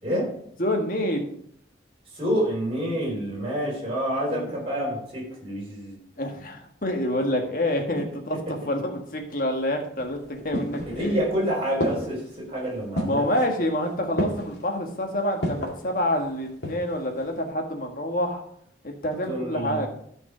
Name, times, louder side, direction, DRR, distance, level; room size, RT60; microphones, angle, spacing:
voice 1, 0.0-0.3 2.1-6.0 8.3-8.4 10.9-13.3 19.3-19.9, equal, 30° right, -3 dB, 4.1 m, -28 dB
voice 2, 0.6-1.3 4.3-4.5 6.2-8.4 8.7-11.2 13.0-18.4 18.8-19.9, left 1 dB, 50° left, 3 dB, 1.6 m, -27 dB
sound 1, 10.0-11.3 11.8-12.3 13.0-13.4 14.2-14.6 15.4-15.8 16.4-17.0 17.3-17.4, equal, 75° left, 2.2 m, -30 dB
13.0 x 5.3 x 5.0 m, 0.68 s
head